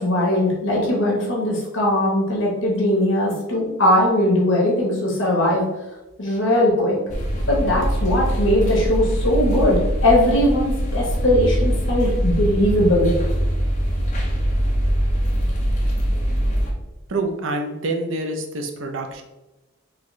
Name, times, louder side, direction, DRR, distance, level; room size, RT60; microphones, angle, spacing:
voice 1, 0.0-5.6 6.2-7.0 7.5-13.1, left 1 dB, 60° left, -3 dB, 1.1 m, -19 dB
sound 1, 7.1-16.7, equal, 35° left, 0.6 m, -22 dB
voice 2, 17.1-19.2, right 2 dB, 65° right, 4 dB, 0.6 m, -26 dB
4.0 x 2.8 x 3.1 m, 1.0 s
head